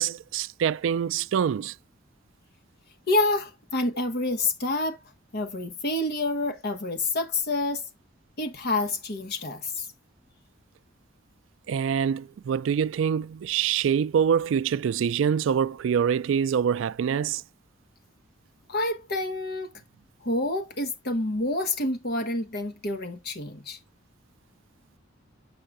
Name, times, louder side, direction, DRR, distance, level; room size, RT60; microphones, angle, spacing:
voice 1, 0.0-1.7 11.7-17.4, right 7 dB, 75° right, 0.3 m, -25 dB
voice 2, 3.1-5.0 5.3-7.8 8.4-9.9 18.7-19.7 20.2-23.8, left 2 dB, 55° left, 1.3 m, -28 dB
7.4 x 5.6 x 2.4 m
head